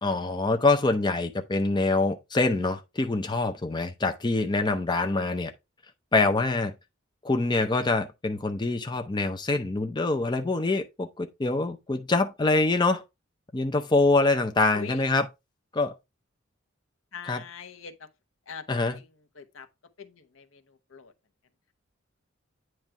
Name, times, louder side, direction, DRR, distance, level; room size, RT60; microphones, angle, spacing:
voice 1, 0.0-5.5 6.1-6.7 7.2-13.0 13.5-15.2 15.7-15.9 17.3-17.4 18.7-19.0, left 3 dB, 20° left, 0.6 m, -25 dB
voice 2, 17.1-18.1 18.5-18.6 18.9-19.1 19.3-19.7 20.0-21.1, left 6 dB, 70° left, 0.9 m, -42 dB
9.0 x 3.1 x 4.6 m
head